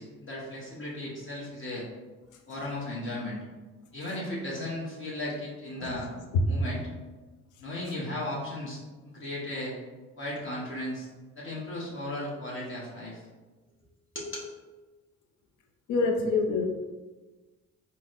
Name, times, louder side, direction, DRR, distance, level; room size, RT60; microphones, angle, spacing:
voice 1, 0.0-1.9 2.5-3.4 3.9-6.1 6.5-6.8 7.6-9.7 10.2-11.1 11.4-13.2 14.1-14.5, left 1 dB, 40° left, -5 dB, 0.9 m, -36 dB
voice 2, 15.9-16.7, left 4 dB, 80° left, 2 dB, 0.5 m, -26 dB
4.0 x 2.1 x 2.4 m, 1.3 s
cardioid pair, 90°, 30 cm